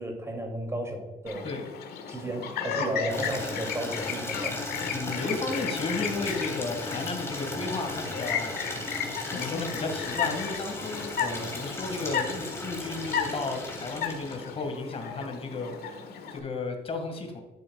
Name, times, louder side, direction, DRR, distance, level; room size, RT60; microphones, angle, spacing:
voice 1, 0.0-1.5 2.1-4.6, right 1 dB, 15° right, 3 dB, 2.7 m, -33 dB
Chirp tweet, 1.3-16.4, left 7 dB, 70° left, 1.6 m, -35 dB
Water tap faucet / Liquid, 3.1-14.7, left 2 dB, 15° left, 2.8 m, -36 dB
voice 2, 4.9-8.5 9.3-17.4, left 3 dB, 35° left, 4 dB, 2.0 m, -34 dB
11.5 x 8.0 x 2.4 m, 1.2 s
cardioid pair, 110°, 17 cm